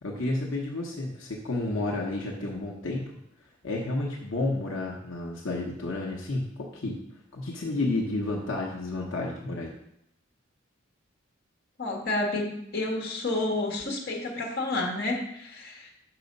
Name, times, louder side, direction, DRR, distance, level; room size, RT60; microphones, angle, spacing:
voice 1, 0.0-3.1 3.6-7.0 7.3-9.7, left 2 dB, 80° left, -2 dB, 1.0 m, -31 dB
voice 2, 11.8-15.9, left 2 dB, 55° left, 0 dB, 1.5 m, -30 dB
5.9 x 4.9 x 5.3 m, 0.77 s
head